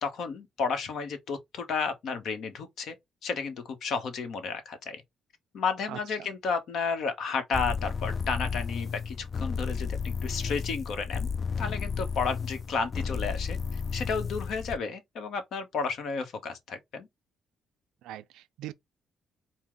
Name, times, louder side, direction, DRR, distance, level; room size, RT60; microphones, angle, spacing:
voice 1, 0.0-3.0 3.2-5.0 5.5-11.3 11.6-17.1, left 5 dB, 70° left, 1.0 m, -32 dB
voice 2, 5.9-6.3 18.0-18.7, right 13 dB, 90° right, 0.4 m, -41 dB
sound 1, 7.5-14.8, left 5 dB, 40° left, 0.3 m, -33 dB
4.5 x 2.1 x 3.7 m
cardioid pair, 90°, 0 cm